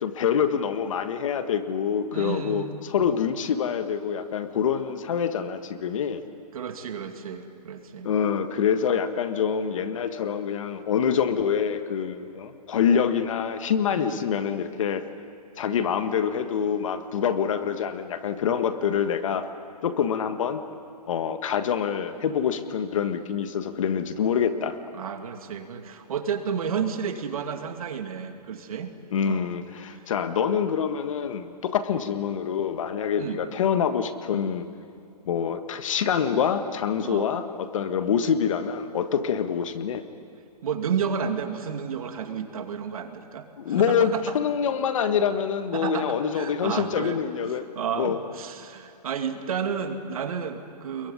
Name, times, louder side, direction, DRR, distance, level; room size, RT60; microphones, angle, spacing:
voice 1, 0.0-6.2 8.0-15.1 15.6-19.5 19.8-20.6 21.1-24.8 29.1-34.7 35.3-40.0 43.6-47.6 47.9-48.2, left 7 dB, 50° left, 9 dB, 1.6 m, -26 dB
voice 2, 2.1-2.8 6.5-8.1 13.9-14.2 24.9-28.9 29.2-29.5 33.2-33.4 37.0-37.3 40.6-44.2 45.7-47.5 47.8-51.1, right 7 dB, 60° right, 6 dB, 2.5 m, -31 dB
26.0 x 22.0 x 9.8 m, 2.5 s
hypercardioid pair, 165°, 21 cm